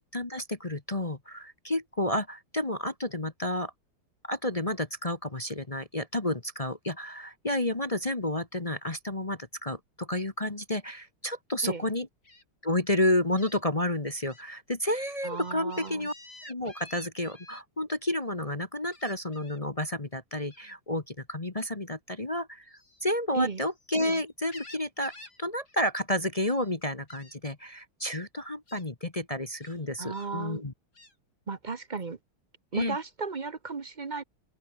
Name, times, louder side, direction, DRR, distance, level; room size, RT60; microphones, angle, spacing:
voice 1, 0.0-3.7 4.2-12.1 12.6-16.1 16.4-25.1 25.4-30.7 32.7-33.0, left 1 dB, 20° left, 1.1 m, -31 dB
Gull seagull, 12.2-12.4 13.4-13.6 14.1-14.4 14.8-17.6 18.9-19.6 20.5-20.8 22.6-23.9 24.3-25.4 25.7-25.9 26.2-26.7 27.1-27.4 28.1-28.2 28.7-28.9 29.6-30.3 30.9-31.1, left 2 dB, 45° left, 7.2 m, -51 dB
voice 2, 15.2-16.1 23.3-23.6 30.0-30.6 31.5-32.2 32.7-34.2, right 4 dB, 40° right, 0.7 m, -34 dB
open air
omnidirectional pair, 2.4 m